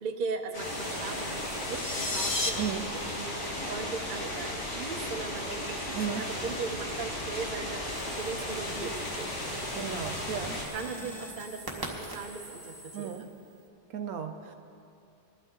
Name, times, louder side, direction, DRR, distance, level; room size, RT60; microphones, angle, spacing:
voice 1, 0.0-3.3 3.7-7.8 8.1-8.9 9.2-9.6 10.7-13.3, right 4 dB, 40° right, 3 dB, 0.8 m, -38 dB
sound 1, 0.5-10.6, left 1 dB, 85° left, 2.7 m, -35 dB
sound 2, 0.6-3.1 5.5-6.6 7.0-13.6, right 1 dB, 15° right, 1.4 m, -46 dB
sound 3, 1.4-2.5, left 2 dB, 35° left, 0.6 m, -32 dB
voice 2, 9.7-10.6 12.9-13.2 13.9-14.6, right 8 dB, 70° right, 6 dB, 1.0 m, -34 dB
20.0 x 12.0 x 3.7 m, 2.6 s
omnidirectional pair, 1.7 m